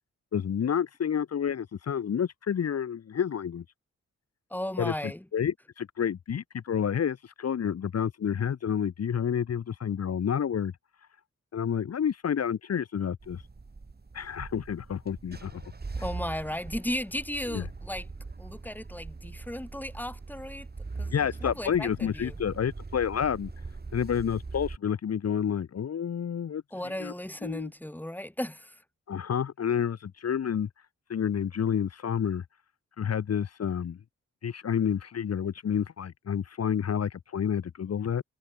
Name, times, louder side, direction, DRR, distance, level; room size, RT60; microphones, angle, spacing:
voice 1, 0.3-3.6 4.8-4.9 5.3-10.7 11.5-13.4 14.1-15.7 17.5-17.6 21.1-23.5 23.9-26.6 27.0-27.1 27.4-27.7 29.1-30.7 31.1-32.4 33.0-34.0 34.4-38.2, left 8 dB, 60° left, 1.3 m, -29 dB
voice 2, 4.5-5.2 16.0-18.1 18.4-20.7 21.0-21.1 21.4-22.4 26.7-28.8, left 1 dB, 5° left, 3.7 m, -35 dB
sound 1, 13.2-24.8, right 3 dB, 35° right, 6.0 m, -41 dB
cardioid pair, 75°, 29 cm